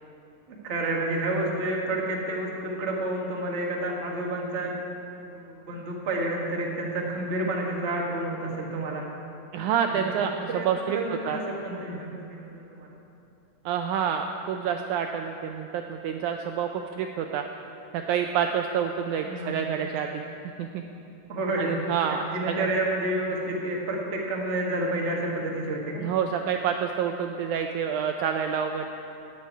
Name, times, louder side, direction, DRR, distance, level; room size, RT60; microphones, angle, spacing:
voice 1, 0.5-4.7 5.1-9.0 9.9-12.9 19.2-19.5 21.3-21.7 22.0-26.0, right 2 dB, 35° right, -2 dB, 1.0 m, -30 dB
voice 2, 9.5-11.4 13.6-17.4 17.9-20.2 20.6-20.8 21.6-22.7 26.0-28.9, right 8 dB, 80° right, 5 dB, 1.8 m, -28 dB
9.8 x 8.2 x 9.3 m, 2.7 s
omnidirectional pair, 3.9 m